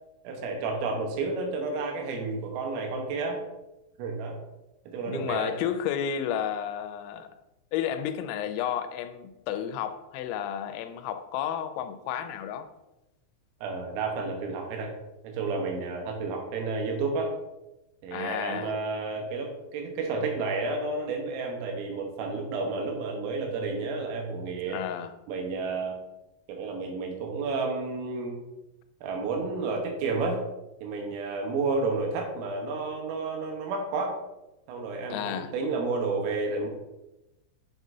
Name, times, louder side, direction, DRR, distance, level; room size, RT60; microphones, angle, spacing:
voice 1, 0.3-3.4 4.0-4.4 4.9-5.5 13.6-14.9 15.2-17.3 18.0-24.8 25.3-26.0 26.5-28.4 29.0-30.4 30.8-34.2 34.7-36.7, right 3 dB, 80° right, 3.7 m, -31 dB
voice 2, 5.0-7.3 7.7-12.7 18.1-18.7 24.7-25.1 35.1-35.5, left 9 dB, 85° left, 3.3 m, -32 dB
7.9 x 7.3 x 2.7 m
omnidirectional pair, 6.0 m